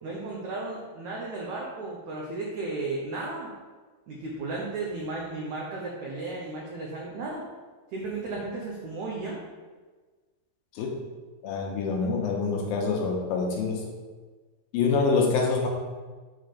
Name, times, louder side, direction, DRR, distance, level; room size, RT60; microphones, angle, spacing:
voice 1, 0.0-3.5 4.1-7.4 7.9-9.4, right 3 dB, 85° right, -3 dB, 1.6 m, -34 dB
voice 2, 11.4-13.9 14.7-15.7, left 4 dB, 75° left, 1 dB, 2.3 m, -26 dB
8.1 x 3.9 x 6.7 m, 1.4 s
omnidirectional pair, 5.0 m